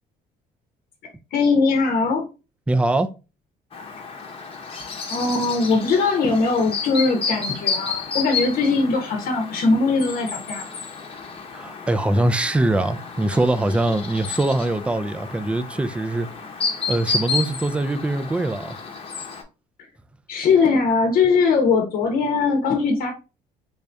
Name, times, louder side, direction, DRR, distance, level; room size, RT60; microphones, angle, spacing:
voice 1, 1.3-2.2 5.1-10.7 20.3-23.1, left 4 dB, 60° left, 0.8 m, -20 dB
voice 2, 2.7-3.1 11.5-16.3 16.9-18.8, right 2 dB, 5° right, 0.3 m, -22 dB
Chirp tweet, 3.7-19.4, left 5 dB, 35° left, 0.8 m, -31 dB
3.4 x 2.6 x 3.3 m
cardioid pair, 110°, 17 cm